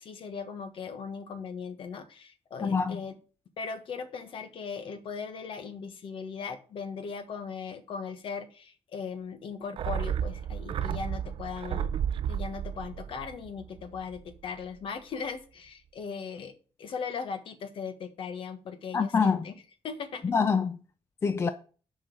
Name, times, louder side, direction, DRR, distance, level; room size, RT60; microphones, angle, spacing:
voice 1, 0.0-3.2 3.6-11.9 12.3-16.5 16.8-19.5 19.8-20.3, left 5 dB, 55° left, 1.3 m, -38 dB
voice 2, 2.6-3.0 18.9-19.4 20.2-20.8 21.2-21.5, left 5 dB, 25° left, 0.4 m, -25 dB
sound 1, 9.8-14.4 14.6-14.7, right 9 dB, 55° right, 0.5 m, -33 dB
6.6 x 5.5 x 7.2 m
cardioid pair, 165°, 11 cm